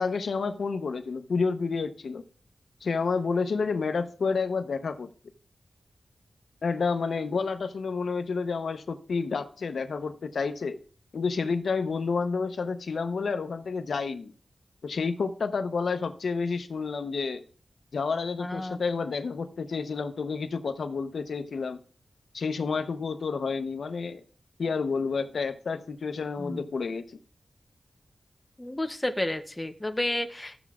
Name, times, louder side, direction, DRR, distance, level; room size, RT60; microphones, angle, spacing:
voice 1, 0.0-2.2 2.8-5.1 6.6-10.8 11.1-14.3 14.8-17.4 17.9-21.8 22.3-24.2 24.6-27.0, left 4 dB, 85° left, 0.8 m, -29 dB
voice 2, 18.4-18.8 26.4-26.6 28.6-30.6, left 1 dB, 15° left, 0.8 m, -31 dB
15.0 x 7.0 x 2.4 m
wide cardioid pair, 130°, 0 cm